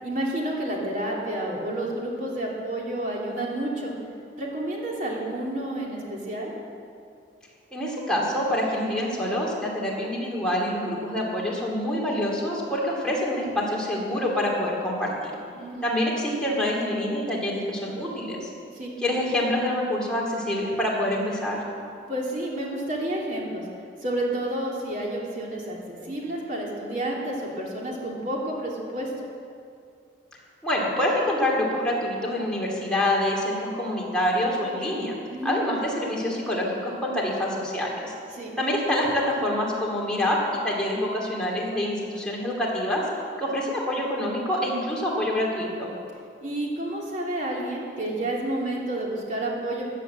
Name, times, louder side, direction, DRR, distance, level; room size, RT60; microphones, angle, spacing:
voice 1, 0.0-3.9 4.4-6.5 15.5-15.9 18.7-18.9 22.1-23.6 24.0-29.1 35.3-35.6 38.3-38.5 46.4-49.9, right 1 dB, 45° right, -3 dB, 2.9 m, -30 dB
voice 2, 7.7-15.3 15.8-18.5 19.0-21.6 30.6-35.2 35.4-38.1 38.6-43.0 43.4-45.9, left 1 dB, 5° left, -4 dB, 2.8 m, -26 dB
15.0 x 9.6 x 7.6 m, 2.4 s
head